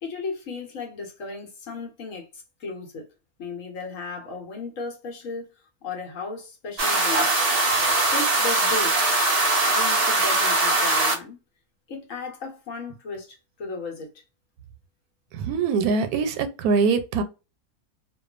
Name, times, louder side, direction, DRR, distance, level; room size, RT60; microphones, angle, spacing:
voice 1, 0.0-3.1 3.4-5.5 5.8-7.3 8.1-9.0 9.7-11.4 11.9-14.2, left 3 dB, 65° left, 1.1 m, -35 dB
sound 1, 6.8-11.2, right 2 dB, 55° right, 0.4 m, -21 dB
voice 2, 15.3-17.2, right 5 dB, 90° right, 1.1 m, -23 dB
2.5 x 2.3 x 2.3 m
omnidirectional pair, 1.5 m